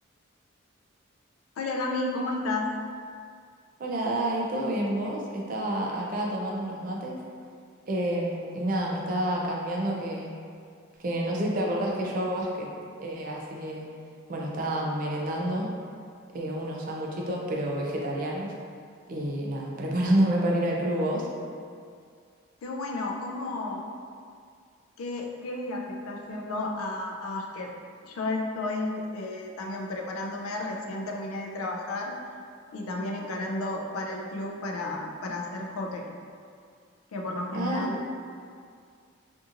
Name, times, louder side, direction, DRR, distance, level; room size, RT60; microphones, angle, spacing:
voice 1, 1.6-2.7 22.6-23.9 25.0-27.7 28.0-32.2 32.7-36.1 37.1-38.0, left 2 dB, 85° left, 1 dB, 0.4 m, -32 dB
voice 2, 3.8-7.2 7.9-10.3 11.0-12.7 13.0-13.9 14.3-15.7 16.3-18.5 19.1-21.3 37.5-37.9, right 1 dB, 40° right, -2 dB, 0.4 m, -29 dB
2.7 x 2.5 x 2.5 m, 2.2 s
head